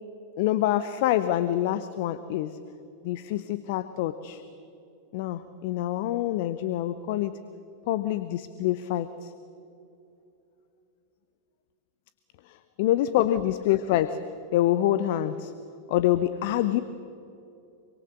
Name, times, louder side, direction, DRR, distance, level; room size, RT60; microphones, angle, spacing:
voice 1, 0.4-2.6 3.0-4.4 5.1-7.4 7.9-9.3 12.5-14.2 14.5-15.5 15.9-16.8, left 13 dB, 50° left, 13 dB, 0.8 m, -26 dB
26.0 x 24.5 x 6.7 m, 2.8 s
figure-of-eight pair, 90°, 0 cm